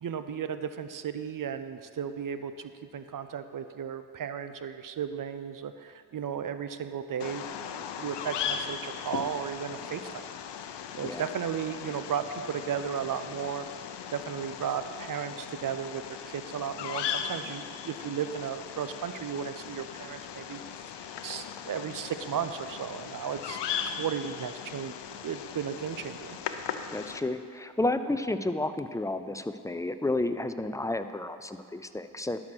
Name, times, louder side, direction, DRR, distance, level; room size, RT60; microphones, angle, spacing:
voice 1, 0.0-10.3 11.0-13.6 14.1-20.6 21.2-23.6 23.8-24.9 25.2-26.4, right 8 dB, 50° right, 10 dB, 0.7 m, -35 dB
Bird vocalization bird call bird song, 7.2-27.2, left 8 dB, 70° left, 0.7 m, -38 dB
voice 2, 26.9-32.4, left 2 dB, 10° left, 10 dB, 0.4 m, -31 dB
11.5 x 6.3 x 6.1 m, 2.2 s
cardioid pair, 70°, 43 cm